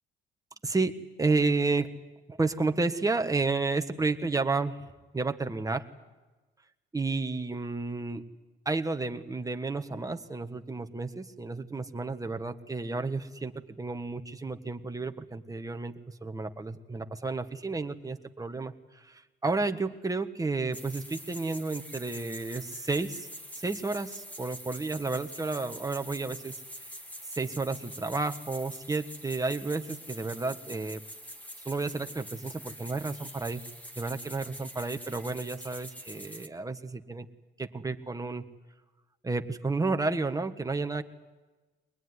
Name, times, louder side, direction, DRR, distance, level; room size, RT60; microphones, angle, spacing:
voice 1, 0.6-2.0 2.3-4.8 5.1-5.8 6.9-8.2 8.6-15.9 16.2-23.3 23.5-26.5 27.3-31.0 31.6-33.6 34.0-37.3 37.6-38.5 39.2-41.0, right 3 dB, 15° right, 7 dB, 1.5 m, -31 dB
sound 1, 20.7-36.5, equal, 5° left, 1.9 m, -45 dB
23.0 x 20.0 x 9.7 m, 1.2 s
cardioid pair, 90°, 20 cm